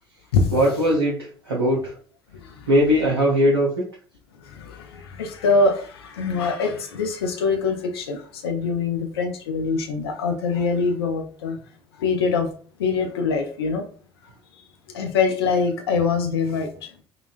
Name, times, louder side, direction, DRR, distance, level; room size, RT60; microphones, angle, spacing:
voice 1, 0.5-1.9 2.7-3.8, equal, 80° right, -5 dB, 0.6 m, -20 dB
voice 2, 5.2-11.6 12.0-12.5 12.8-13.8 14.9-16.7, left 4 dB, 70° left, 4 dB, 0.5 m, -23 dB
3.8 x 2.2 x 2.4 m, 0.42 s
figure-of-eight pair, 60°, 13 cm